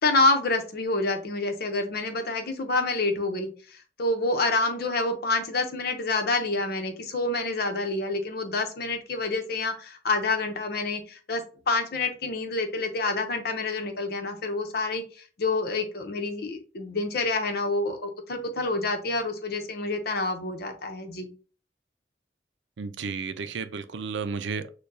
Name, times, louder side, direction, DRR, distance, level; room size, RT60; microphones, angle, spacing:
voice 1, 0.0-21.3, left 3 dB, 60° left, 0.8 m, -28 dB
voice 2, 22.8-24.7, right 5 dB, 85° right, 0.5 m, -32 dB
6.5 x 2.3 x 2.7 m
head